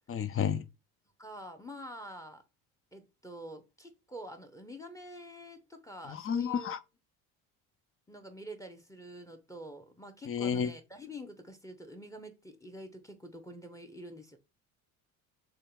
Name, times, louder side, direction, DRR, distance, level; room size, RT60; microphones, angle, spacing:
voice 1, 0.1-0.6 6.1-6.8 10.3-10.7, left 8 dB, 35° left, 0.5 m, -31 dB
voice 2, 1.2-2.4 2.9-6.7 8.1-14.4, equal, 10° left, 0.9 m, -47 dB
3.4 x 2.8 x 3.6 m
supercardioid pair, 85°, 40 cm